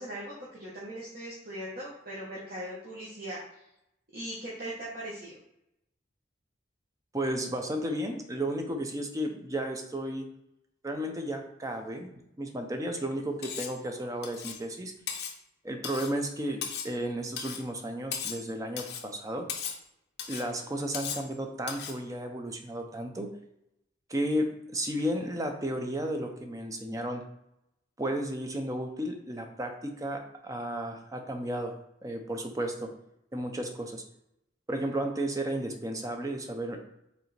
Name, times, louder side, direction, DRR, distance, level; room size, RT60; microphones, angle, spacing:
voice 1, 0.0-3.6 4.1-5.3, right 1 dB, 50° right, -6 dB, 0.9 m, -40 dB
voice 2, 7.1-10.3 10.8-12.1 12.4-14.9 15.6-19.5 20.3-23.3 24.1-27.2 28.0-31.7 32.0-32.9 33.3-34.0 34.7-36.8, right 1 dB, 15° right, 4 dB, 0.5 m, -33 dB
Cutlery silverware, 13.4-13.8 14.2-14.6 15.1-15.4 15.8-16.2 16.6-17.0 17.4-17.6 18.1-18.5 18.8-19.1 19.5-19.8 20.2-20.5 20.9-21.3 21.7-22.0, left 7 dB, 55° left, 0.6 m, -37 dB
4.8 x 3.3 x 3.2 m, 0.81 s
head